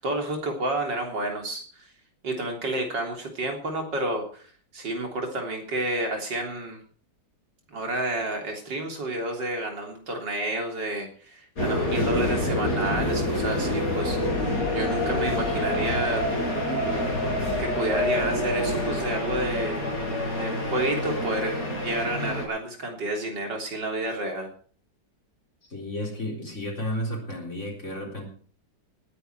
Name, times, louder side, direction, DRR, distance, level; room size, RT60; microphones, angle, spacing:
voice 1, 0.0-1.9 2.2-6.8 7.7-16.2 17.6-19.8 20.3-24.5, right 1 dB, 80° right, 2 dB, 4.1 m, -30 dB
sound 1, 11.6-22.5, left 1 dB, 60° left, 5.2 m, -27 dB
voice 2, 25.7-28.3, equal, 40° left, 0 dB, 4.3 m, -32 dB
19.0 x 10.0 x 4.7 m, 0.43 s
omnidirectional pair, 1.9 m